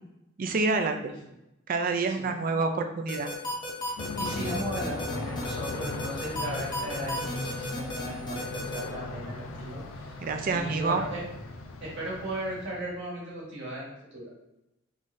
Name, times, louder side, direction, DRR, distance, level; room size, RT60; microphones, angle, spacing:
voice 1, 0.4-1.1 1.7-3.3 10.2-11.0, right 3 dB, 40° right, 6 dB, 0.4 m, -27 dB
voice 2, 1.9-2.3 4.2-10.2 10.5-11.2 11.8-14.3, right 1 dB, 60° right, -6 dB, 1.5 m, -37 dB
sound 1, 3.1-8.8, left 1 dB, 20° left, 0.7 m, -34 dB
Aircraft, 4.0-13.0, left 2 dB, 75° left, 0.4 m, -38 dB
3.8 x 3.1 x 2.6 m, 0.89 s
head